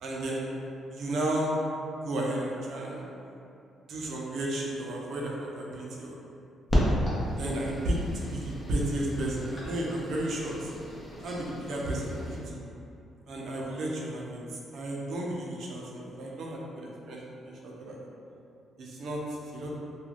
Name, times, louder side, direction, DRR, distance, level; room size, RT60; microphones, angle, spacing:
voice 1, 0.0-0.5 0.9-1.5 2.0-3.0 3.9-6.1 7.4-10.7 11.2-12.6 13.3-14.4 14.7-18.0 18.8-19.8, right 1 dB, 70° right, -3 dB, 0.5 m, -33 dB
sound 1, 6.7-12.4, equal, 25° left, 0.7 m, -33 dB
2.4 x 2.3 x 3.2 m, 2.6 s
cardioid pair, 90°, 0 cm